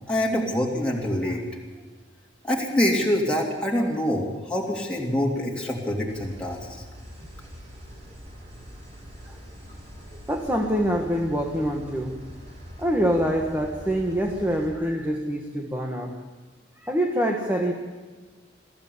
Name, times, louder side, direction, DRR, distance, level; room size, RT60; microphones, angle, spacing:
voice 1, 0.1-1.4 2.4-6.8, equal, 5° left, -3 dB, 3.0 m, -25 dB
sound 1, 6.1-14.7, equal, 35° right, 7.7 m, -43 dB
voice 2, 10.3-12.1 12.8-16.1 16.8-17.7, equal, 10° right, 1 dB, 1.7 m, -25 dB
22.5 x 14.5 x 8.7 m, 1.3 s
head